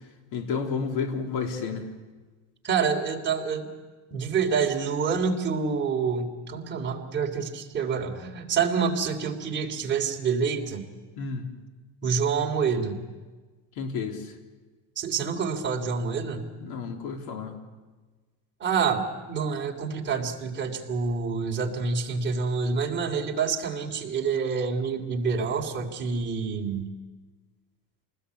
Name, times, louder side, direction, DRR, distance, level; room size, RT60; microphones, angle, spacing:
voice 1, 0.3-1.9 11.2-11.5 13.8-14.2 16.6-17.6, left 5 dB, 75° left, 3 dB, 3.6 m, -31 dB
voice 2, 2.6-3.7 4.1-10.8 12.0-13.0 15.0-16.4 18.6-26.9, right 5 dB, 30° right, 0 dB, 3.3 m, -27 dB
28.0 x 20.0 x 8.4 m, 1.3 s
cardioid pair, 150°, 40 cm